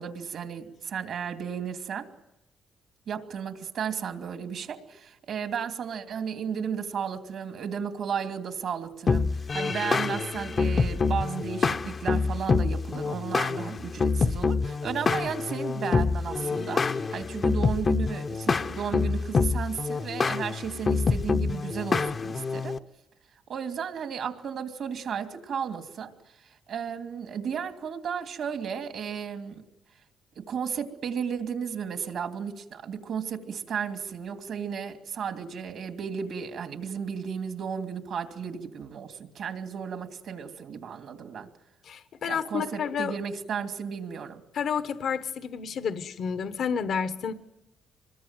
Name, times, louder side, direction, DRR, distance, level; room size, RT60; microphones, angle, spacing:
voice 1, 0.0-2.1 3.1-22.8 23.5-26.1 26.7-29.6 30.4-41.5 42.2-44.4, right 7 dB, 65° right, 5 dB, 2.8 m, -34 dB
sound 1, 9.1-22.8, left 4 dB, 40° left, 0.9 m, -27 dB
voice 2, 41.8-43.1 44.5-47.3, left 7 dB, 65° left, 10 dB, 1.2 m, -30 dB
26.0 x 21.5 x 9.1 m, 0.90 s
cardioid pair, 90°, 0 cm